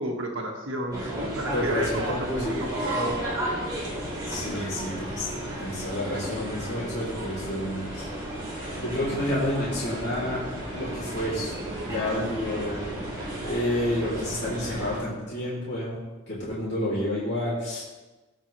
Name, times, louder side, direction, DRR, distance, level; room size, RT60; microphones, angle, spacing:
voice 1, 0.0-3.2, right 1 dB, 60° right, 0 dB, 1.7 m, -32 dB
sound 1, 0.9-15.0, right 1 dB, 20° right, 2.7 m, -33 dB
voice 2, 1.5-2.7 4.3-8.1 8.7-10.4 10.7-11.6 11.8-13.1 13.4-16.0 16.3-17.8, left 1 dB, 55° left, -9 dB, 3.1 m, -30 dB
Wind instrument woodwind instrument, 8.5-14.4, right 2 dB, 15° left, 2.5 m, -46 dB
15.5 x 5.6 x 3.3 m, 1.2 s
head